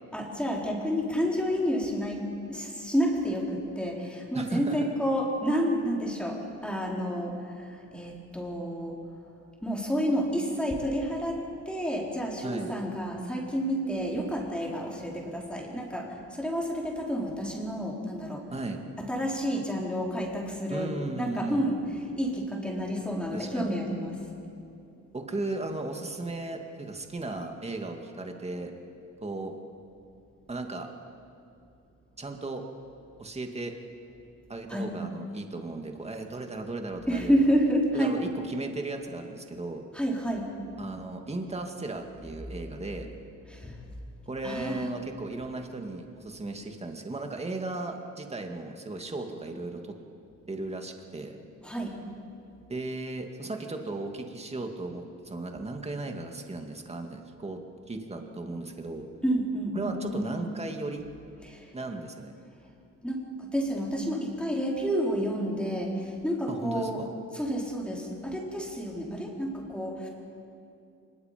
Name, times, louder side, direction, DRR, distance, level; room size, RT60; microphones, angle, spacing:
voice 1, 0.1-2.2 2.5-9.0 9.6-11.4 11.7-18.4 19.0-20.9 21.2-24.2 34.7-34.9 37.1-38.1 39.9-40.5 43.5-43.8 44.4-44.9 51.6-51.9 59.2-60.2 61.4-61.7 63.0-67.0 67.3-70.1, equal, 5° left, -2 dB, 4.3 m, -30 dB
voice 2, 4.3-4.9 12.4-12.7 18.5-18.8 20.7-21.6 23.3-23.8 25.1-28.7 29.2-29.5 30.5-30.9 32.2-32.6 33.2-33.7 34.5-37.5 37.9-39.8 40.8-43.1 44.3-50.0 50.5-51.4 52.7-57.6 57.9-59.1 59.7-61.0 61.7-62.4 66.5-67.1, right 2 dB, 20° right, 3 dB, 2.3 m, -36 dB
24.0 x 21.5 x 5.3 m, 2.6 s
cardioid pair, 90°, 30 cm